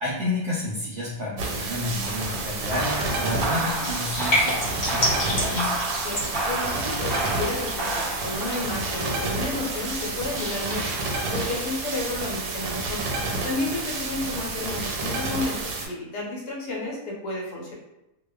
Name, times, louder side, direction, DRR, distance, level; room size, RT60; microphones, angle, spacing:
voice 1, 0.0-5.8, left 2 dB, 75° right, -6 dB, 0.7 m, -30 dB
sound 1, 1.4-15.9, right 3 dB, 90° right, 1.2 m, -30 dB
sound 2, 2.0-12.2, right 2 dB, ahead, 0.6 m, -32 dB
sound 3, 3.4-8.6, equal, 55° left, 0.5 m, -30 dB
voice 2, 6.0-13.0 13.4-17.7, left 2 dB, 80° left, -3 dB, 1.3 m, -32 dB
2.8 x 2.0 x 2.3 m, 0.91 s
omnidirectional pair, 1.7 m